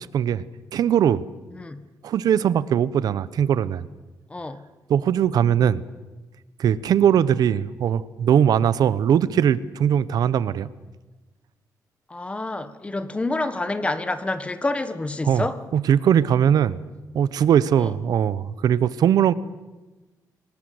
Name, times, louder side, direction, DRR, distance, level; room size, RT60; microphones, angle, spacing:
voice 1, 0.1-0.4 0.7-1.2 2.0-3.9 4.9-5.8 6.6-10.7 15.2-15.5 15.7-16.8 17.1-19.3, right 9 dB, 70° right, 17 dB, 1.0 m, -20 dB
voice 2, 1.5-1.9 4.3-4.6 12.1-15.6 17.8-17.9, left 2 dB, 15° left, 12 dB, 1.4 m, -28 dB
28.5 x 19.5 x 7.9 m, 1.2 s
cardioid pair, 130°, 7 cm